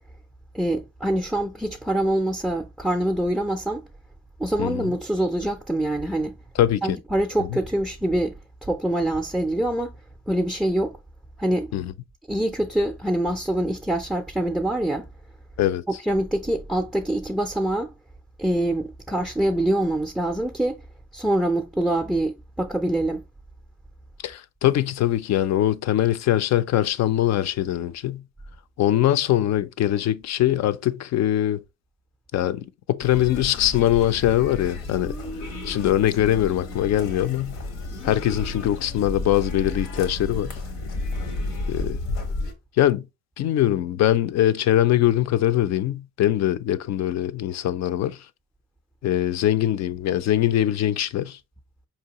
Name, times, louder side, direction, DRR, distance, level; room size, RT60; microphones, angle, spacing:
voice 1, 0.5-3.8 4.4-6.4 6.8-10.0 10.3-11.0 11.4-11.7 12.3-15.1 16.0-17.9 18.4-20.8 21.1-23.2, right 1 dB, ahead, 0.4 m, -25 dB
voice 2, 6.6-7.0 7.5-7.6 11.7-11.9 15.6-15.8 24.2-28.2 28.8-31.6 32.3-35.1 35.6-37.6 38.0-40.6 41.7-42.0 42.8-43.1 43.4-48.2 49.0-51.4, left 12 dB, 60° left, 0.4 m, -22 dB
sound 1, 33.0-42.5, left 2 dB, 90° left, 1.0 m, -32 dB
4.5 x 2.8 x 2.8 m
cardioid pair, 90°, 30 cm